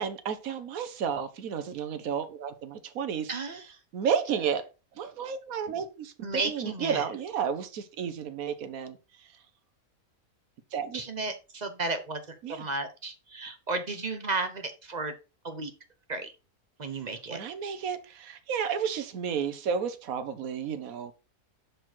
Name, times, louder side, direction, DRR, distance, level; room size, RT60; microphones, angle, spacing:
voice 1, 0.0-3.3 3.9-4.6 5.0-9.0 10.7-11.0 12.4-12.7 17.3-21.1, right 7 dB, 75° right, 1.3 m, -32 dB
voice 2, 3.3-3.6 6.2-7.0 10.9-15.1 15.4-15.7 16.1-16.3 16.8-17.4, right 3 dB, 35° right, 0.9 m, -33 dB
6.1 x 4.9 x 4.4 m
omnidirectional pair, 1.5 m